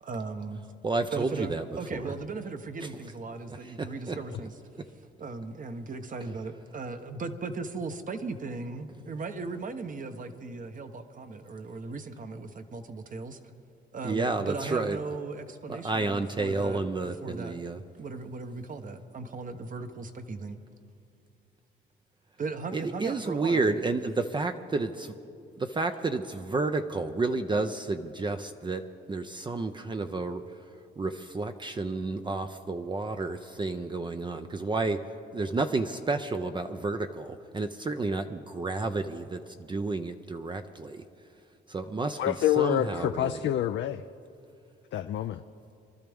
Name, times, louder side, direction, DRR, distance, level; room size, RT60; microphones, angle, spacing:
voice 1, 0.0-0.7 1.1-4.5 5.2-13.4 13.9-16.8 17.2-17.6 18.0-20.6 22.4-23.6, right 3 dB, 40° right, 8 dB, 1.0 m, -37 dB
voice 2, 0.8-2.1 2.8-2.9 3.5-4.2 14.0-15.0 15.7-17.8 22.7-25.1 25.6-30.4 31.0-35.0 35.3-41.0 41.7-43.4, right 3 dB, 25° right, 7 dB, 0.5 m, -31 dB
voice 3, 42.2-44.0 44.9-45.4, left 11 dB, 65° left, 8 dB, 0.4 m, -27 dB
24.0 x 12.5 x 3.5 m, 2.5 s
cardioid pair, 90°, 20 cm